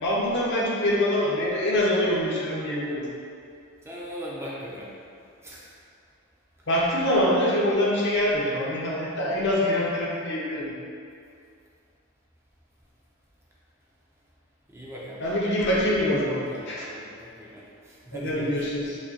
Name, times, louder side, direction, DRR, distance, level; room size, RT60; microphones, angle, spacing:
voice 1, 0.0-3.1 6.7-10.7 15.2-16.9 18.1-19.0, left 1 dB, 60° left, -5 dB, 0.7 m, -24 dB
voice 2, 3.8-5.0 5.4-5.7 14.7-15.2 16.5-18.7, equal, 15° right, -6 dB, 0.4 m, -39 dB
4.5 x 2.2 x 2.8 m, 2.4 s
head